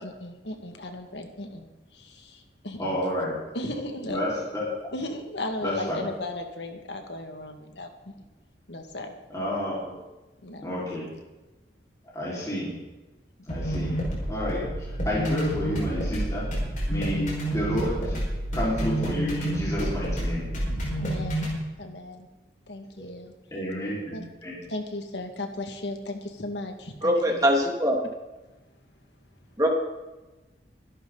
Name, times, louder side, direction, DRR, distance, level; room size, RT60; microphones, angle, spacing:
voice 1, 0.0-2.9 3.5-4.2 4.9-8.3 8.7-9.1 10.4-10.7 21.0-21.5 21.8-22.3 22.7-23.3 24.1-24.3 24.7-27.5, left 2 dB, 85° left, 4 dB, 2.1 m, -36 dB
voice 2, 2.8-3.3 4.1-4.6 5.6-6.0 9.3-9.9 10.6-11.1 12.1-12.7 13.5-13.9 14.3-16.5 16.9-18.3 18.5-20.5 23.5-24.6, equal, 20° left, -8 dB, 4.8 m, -30 dB
sound 1, 13.5-21.6, equal, 45° left, 5.4 m, -29 dB
voice 3, 27.0-27.9 29.6-29.7, equal, 20° right, 1 dB, 2.5 m, -22 dB
24.5 x 11.5 x 4.1 m, 1.1 s
head